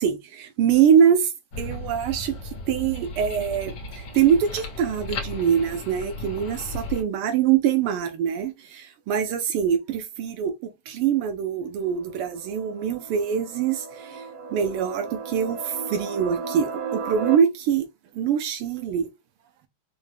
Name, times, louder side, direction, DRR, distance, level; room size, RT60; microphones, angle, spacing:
voice 1, 0.0-17.9 18.1-19.1, right 8 dB, 85° right, 1.5 m, -24 dB
sound 1, 1.5-7.0, left 2 dB, 60° left, 1.5 m, -35 dB
sound 2, 11.8-17.4, right 5 dB, 65° right, 1.9 m, -35 dB
5.1 x 2.2 x 3.2 m
omnidirectional pair, 2.4 m